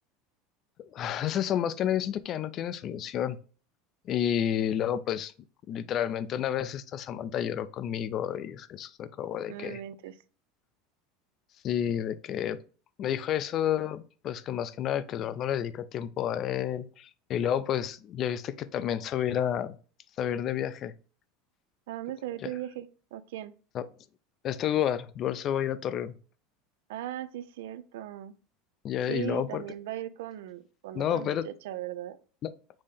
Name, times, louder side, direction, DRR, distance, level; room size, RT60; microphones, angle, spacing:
voice 1, 0.8-3.4 4.1-5.3 5.7-9.8 11.6-12.6 13.0-19.8 20.2-20.9 22.4-22.5 23.7-23.9 24.4-26.1 28.8-29.6 30.9-31.5 32.4-32.5, left 10 dB, 35° left, 0.3 m, -30 dB
voice 2, 9.5-10.1 21.9-23.5 26.9-28.3 29.1-32.2, right 12 dB, 85° right, 0.4 m, -38 dB
5.3 x 2.8 x 3.4 m
supercardioid pair, 150°, 0 cm